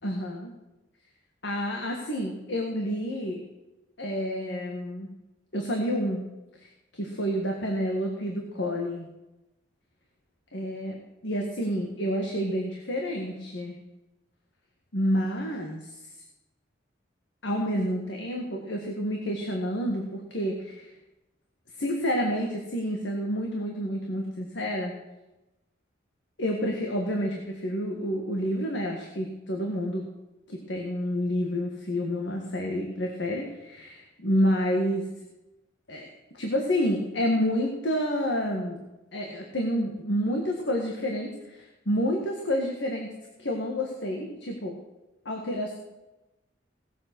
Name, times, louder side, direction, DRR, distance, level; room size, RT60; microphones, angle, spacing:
voice 1, 0.0-0.5 1.4-3.4 4.0-5.1 5.5-6.2 6.6-9.1 10.5-11.0 11.2-13.8 14.9-15.9 17.4-20.9 21.7-24.9 26.4-30.1 30.5-35.0 35.9-38.8 39.1-43.1 43.4-44.8 45.3-45.7, equal, 70° left, 1 dB, 1.8 m, -29 dB
18.0 x 7.7 x 6.2 m, 1.0 s
head